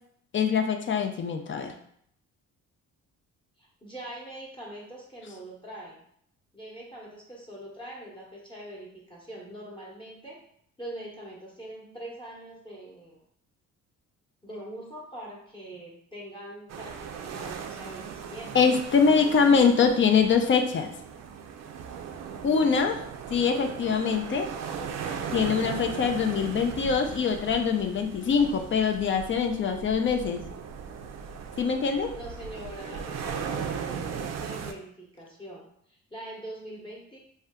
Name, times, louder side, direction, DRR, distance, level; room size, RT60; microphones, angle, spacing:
voice 1, 0.3-1.7 18.5-20.9 22.4-23.0 23.3-24.5 25.3-30.4 31.6-32.1, left 6 dB, 40° left, 5 dB, 0.4 m, -23 dB
voice 2, 3.6-6.0 6.5-10.4 10.8-13.2 14.4-18.6 19.0-19.8 32.1-37.2, right 1 dB, 15° left, -4 dB, 0.8 m, -43 dB
sound 1, 16.7-34.7, right 6 dB, 60° right, 0.4 m, -38 dB
2.7 x 2.2 x 3.4 m, 0.67 s
cardioid pair, 90°, 30 cm